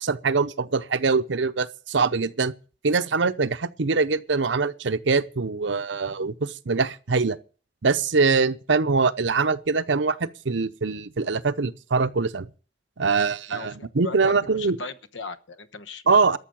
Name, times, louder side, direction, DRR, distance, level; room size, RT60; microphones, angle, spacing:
voice 1, 0.0-2.5 2.8-7.4 7.8-12.5 13.0-14.8 16.1-16.4, right 4 dB, 80° right, 0.7 m, -23 dB
voice 2, 13.5-16.4, left 4 dB, 85° left, 1.1 m, -38 dB
13.0 x 6.7 x 9.1 m
head